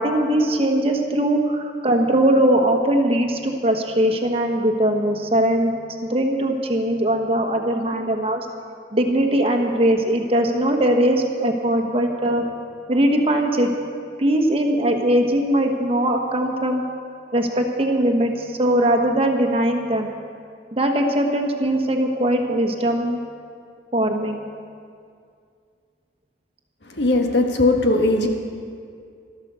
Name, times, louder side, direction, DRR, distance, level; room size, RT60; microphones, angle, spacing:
voice 1, 0.0-5.7 6.1-8.5 8.9-12.4 12.9-13.7 14.2-16.8 17.3-20.1 20.7-23.2 23.9-24.4, right 1 dB, 30° right, 3 dB, 1.2 m, -20 dB
voice 2, 26.8-28.3, left 2 dB, 75° left, 3 dB, 1.5 m, -19 dB
13.0 x 12.0 x 6.8 m, 2.3 s
head